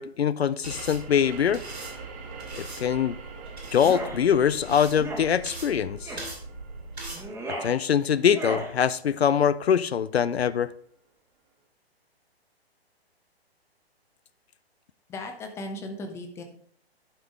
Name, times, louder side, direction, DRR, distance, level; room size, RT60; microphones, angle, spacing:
voice 1, 0.0-1.6 2.6-3.2 3.7-6.2 7.6-10.7, left 8 dB, 75° left, 0.5 m, -23 dB
sound 1, 0.6-7.2, right 2 dB, 85° right, 2.4 m, -40 dB
sound 2, 0.7-10.0, right 6 dB, 35° right, 1.5 m, -47 dB
sound 3, 3.7-4.2 4.9-5.3 6.0-6.3 7.1-7.7 8.3-8.7, right 1 dB, 10° right, 1.2 m, -35 dB
voice 2, 15.1-16.4, left 2 dB, 10° left, 0.6 m, -36 dB
11.5 x 5.2 x 3.5 m
figure-of-eight pair, 120°, 32 cm